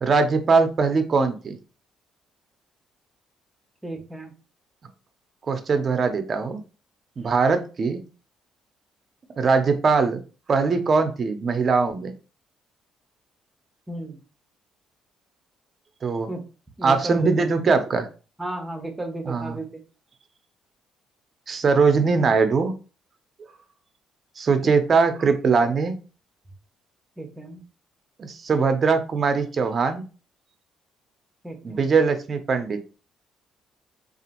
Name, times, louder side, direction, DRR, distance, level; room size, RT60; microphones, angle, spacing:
voice 1, 0.0-1.6 5.5-6.6 7.2-8.0 9.4-10.2 10.5-12.1 16.0-16.3 16.8-18.1 19.3-19.5 21.5-22.7 24.4-26.0 28.2-30.0 31.6-32.8, right 4 dB, 45° right, 8 dB, 0.5 m, -21 dB
voice 2, 3.8-4.3 13.9-14.2 16.3-16.4 16.8-17.5 18.4-19.8 24.6-24.8 27.2-27.6 31.4-31.9, right 2 dB, 15° right, 3 dB, 0.7 m, -34 dB
2.8 x 2.4 x 2.5 m, 0.34 s
cardioid pair, 80°, 0 cm